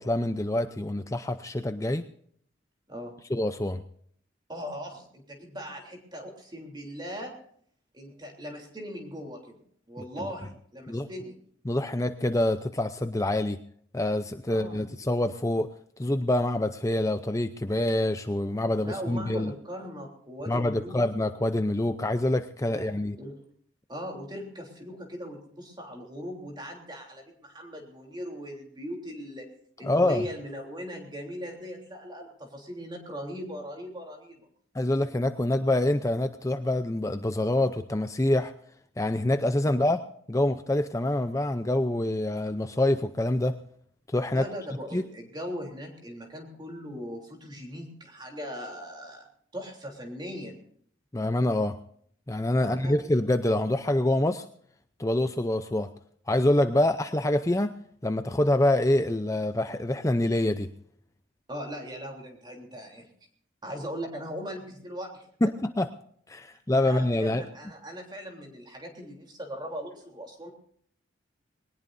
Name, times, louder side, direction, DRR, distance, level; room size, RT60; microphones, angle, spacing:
voice 1, 0.0-2.0 3.3-3.8 10.9-11.1 11.7-13.6 13.9-15.7 16.0-19.5 20.5-23.2 29.8-30.2 34.7-38.5 39.0-40.0 40.3-43.6 44.1-44.4 44.9-45.0 51.1-51.8 52.3-54.5 55.0-55.9 56.3-57.7 58.0-60.7 65.8-65.9 66.3-67.4, left 1 dB, 15° left, 9 dB, 0.6 m, -26 dB
voice 2, 4.5-7.3 7.9-9.6 9.9-11.3 14.5-14.8 18.8-21.0 22.7-23.4 23.9-29.5 29.8-34.5 39.7-39.9 44.3-49.3 49.5-50.6 52.6-53.0 61.5-63.1 63.6-65.3 66.8-70.5, equal, 25° right, 1 dB, 3.3 m, -39 dB
21.5 x 19.0 x 2.6 m, 0.62 s
head